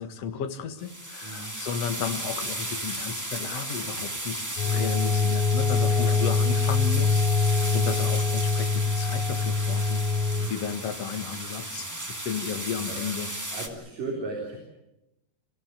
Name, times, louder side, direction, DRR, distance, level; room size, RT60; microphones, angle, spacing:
voice 1, 0.0-13.3, left 7 dB, 50° left, 7 dB, 2.2 m, -34 dB
sound 1, 0.8-13.7, right 1 dB, 15° right, 0.7 m, -35 dB
voice 2, 1.2-1.5 4.6-4.9 5.6-6.1 7.5-7.8 10.3-10.5 11.8-11.9 12.9-13.0 13.5-14.6, right 3 dB, 55° right, -1 dB, 5.4 m, -37 dB
sound 2, 4.6-10.5, left 4 dB, 75° left, 5.1 m, -24 dB
28.0 x 16.0 x 9.2 m, 0.90 s
omnidirectional pair, 4.5 m